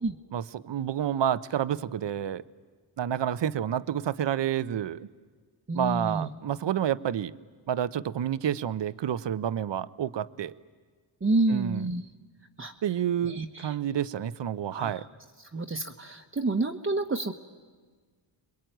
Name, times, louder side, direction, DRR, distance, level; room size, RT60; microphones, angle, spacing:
voice 1, 0.3-2.4 3.0-5.1 5.7-7.3 7.7-10.5 11.5-11.9 12.8-15.0, right 10 dB, 60° right, 15 dB, 0.9 m, -29 dB
voice 2, 5.7-6.3 11.2-12.0 12.6-12.7 13.2-13.8 14.7-15.1 15.4-17.3, right 2 dB, 25° right, 2 dB, 1.3 m, -29 dB
27.0 x 22.0 x 9.2 m, 1.5 s
cardioid pair, 60°, 50 cm